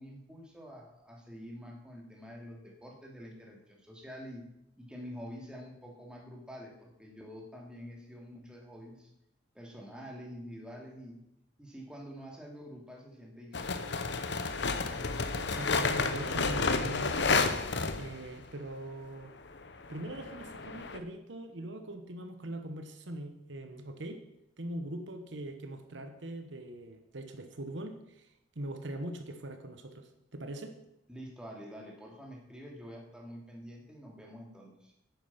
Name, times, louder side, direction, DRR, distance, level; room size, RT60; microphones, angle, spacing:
voice 1, 0.0-4.4 4.8-9.1 9.5-11.2 11.6-13.9 31.1-34.9, equal, 5° right, -1 dB, 2.4 m, -47 dB
sound 1, 13.5-18.4 19.5-21.0, left 4 dB, 60° left, 0.9 m, -31 dB
voice 2, 15.4-17.7 18.0-19.3 19.9-24.2 24.6-30.8, right 1 dB, 70° right, 7 dB, 1.1 m, -42 dB
10.5 x 9.1 x 5.8 m, 0.83 s
head